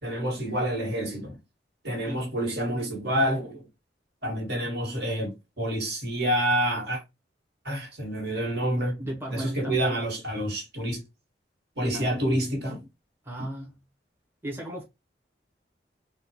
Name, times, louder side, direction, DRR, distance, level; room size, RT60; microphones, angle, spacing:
voice 1, 0.0-1.4 1.8-3.7 4.2-7.0 7.6-9.0 9.3-11.0 11.8-12.8, right 1 dB, 60° right, 1.6 m, -28 dB
voice 2, 9.0-10.0 11.8-12.1 13.2-13.7 14.4-14.8, right 1 dB, 15° right, 0.8 m, -35 dB
3.9 x 2.2 x 2.9 m
head